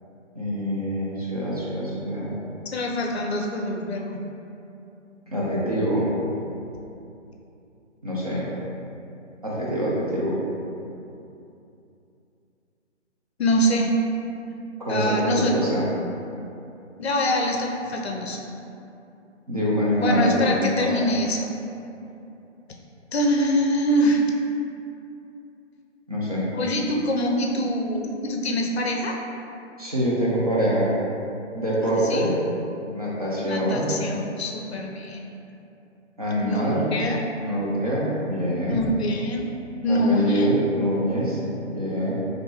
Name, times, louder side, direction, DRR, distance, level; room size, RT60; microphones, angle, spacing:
voice 1, 0.4-2.3 5.3-6.1 8.0-8.5 9.4-10.4 14.8-15.9 19.5-21.0 26.1-26.4 29.8-30.9 31.5-32.3 32.9-33.9 36.2-36.8 37.4-38.8 39.9-42.1, equal, 30° right, -7 dB, 0.5 m, -25 dB
voice 2, 2.7-4.2 13.4-13.9 14.9-15.5 17.0-18.4 20.0-21.5 23.1-24.2 26.5-29.2 31.8-32.3 33.5-35.2 36.4-37.2 38.7-39.5 39.8-40.5, equal, 60° left, 0 dB, 0.5 m, -24 dB
3.4 x 2.5 x 3.0 m, 2.8 s
hypercardioid pair, 155°, 37 cm